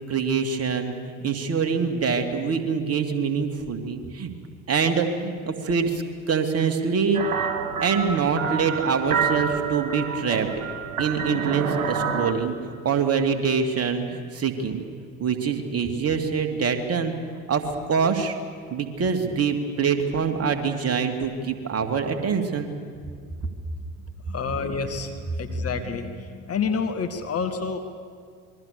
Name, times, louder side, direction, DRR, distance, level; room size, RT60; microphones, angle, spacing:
voice 1, 0.1-4.3 4.7-7.5 7.8-10.6 11.0-12.6 12.8-14.8 15.2-17.1 17.5-18.4 18.7-22.7, right 5 dB, 35° right, 6 dB, 2.8 m, -25 dB
sound 1, 7.1-12.3, right 6 dB, 80° right, 1.8 m, -28 dB
voice 2, 24.3-27.8, left 5 dB, 35° left, 6 dB, 2.1 m, -29 dB
27.5 x 22.0 x 7.0 m, 2.1 s
figure-of-eight pair, 65°, 40 cm